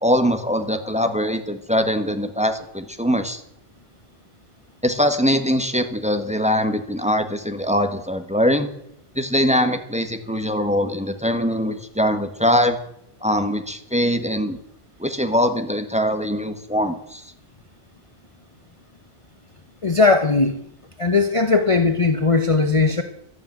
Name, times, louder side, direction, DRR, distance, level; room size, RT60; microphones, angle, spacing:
voice 1, 0.0-3.4 4.8-8.7 9.1-12.8 13.2-14.6 15.0-17.2, equal, 5° right, 7 dB, 1.6 m, -22 dB
voice 2, 19.8-20.6 21.0-23.0, left 3 dB, 30° left, 7 dB, 1.0 m, -18 dB
12.5 x 12.0 x 9.3 m, 0.74 s
omnidirectional pair, 1.2 m